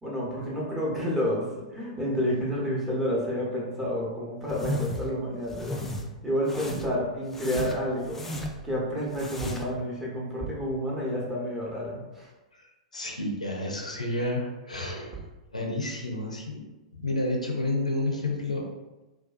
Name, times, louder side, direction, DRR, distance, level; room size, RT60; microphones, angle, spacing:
voice 1, 0.0-5.8 6.2-8.2 8.6-12.3, equal, 10° right, -5 dB, 0.8 m, -30 dB
sound 1, 4.5-5.1 5.5-6.0 6.5-7.0 7.3-8.7 9.1-9.8, left 1 dB, 10° left, 0.3 m, -34 dB
sound 2, 5.9-6.3 7.4-7.9 9.4-9.8 10.4-10.8 14.8-14.9 15.1-15.4, right 3 dB, 40° right, 0.5 m, -41 dB
voice 2, 12.6-15.2 15.5-16.6 16.9-18.7, left 2 dB, 90° left, 0 dB, 0.5 m, -30 dB
2.6 x 2.3 x 2.4 m, 1.1 s
figure-of-eight pair, 105°, 4 cm